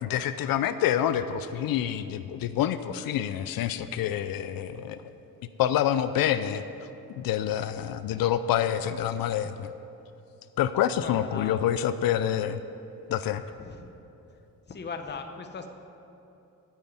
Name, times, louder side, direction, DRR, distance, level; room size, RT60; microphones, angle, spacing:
voice 1, 0.0-5.0 5.6-6.6 7.1-9.7 10.6-12.6 13.1-13.4, left 10 dB, 80° left, 12 dB, 0.5 m, -27 dB
voice 2, 11.0-11.6 13.6-14.4 14.7-15.7, left 5 dB, 30° left, 6 dB, 0.8 m, -40 dB
9.0 x 9.0 x 9.5 m, 2.8 s
cardioid pair, 180°, 34 cm